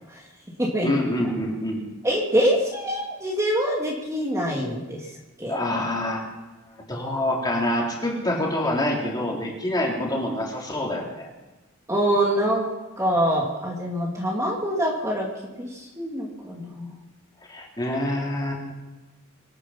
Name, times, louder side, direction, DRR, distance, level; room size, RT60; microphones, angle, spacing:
voice 1, 0.8-1.8 5.5-6.3 6.9-11.3 17.5-18.7, left 1 dB, 20° left, -2 dB, 3.7 m, -26 dB
voice 2, 2.0-5.1 5.4-5.5 11.9-12.7 13.0-17.0, equal, 15° right, -2 dB, 2.5 m, -25 dB
24.5 x 9.8 x 5.8 m, 1.1 s
head